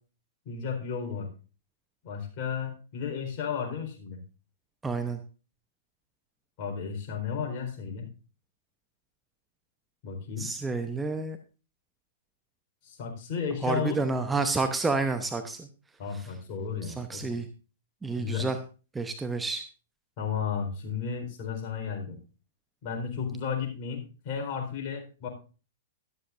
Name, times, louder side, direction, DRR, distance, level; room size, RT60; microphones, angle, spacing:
voice 1, 0.4-1.3 2.0-4.2 6.6-8.1 10.0-10.5 12.8-14.0 16.0-17.4 18.2-18.5 20.2-22.2 22.8-25.3, left 6 dB, 40° left, 1 dB, 4.4 m, -33 dB
voice 2, 4.8-5.2 10.4-11.4 13.6-15.7 16.1-16.3 16.9-17.5 18.0-18.6 18.9-19.6, right 3 dB, 10° right, 7 dB, 0.9 m, -29 dB
13.0 x 13.0 x 2.6 m, 0.34 s
figure-of-eight pair, 110°, 0 cm